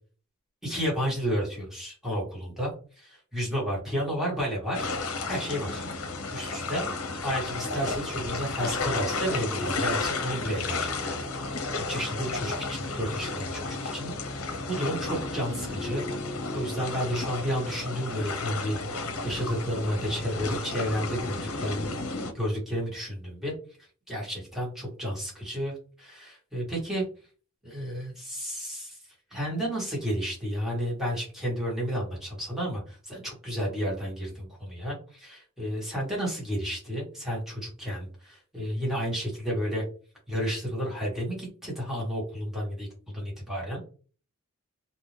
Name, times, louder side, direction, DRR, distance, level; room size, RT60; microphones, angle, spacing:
voice 1, 0.6-2.7 3.0-4.9 5.3-5.9 6.3-6.8 7.2-11.6 11.9-16.0 16.3-21.9 22.3-23.5 24.1-27.0 27.6-29.0 29.3-39.8 40.3-42.9 43.1-43.8, equal, ahead, -5 dB, 1.8 m, -32 dB
sound 1, 4.7-22.3, left 3 dB, 65° left, 0.9 m, -32 dB
4.1 x 2.8 x 3.3 m, 0.39 s
head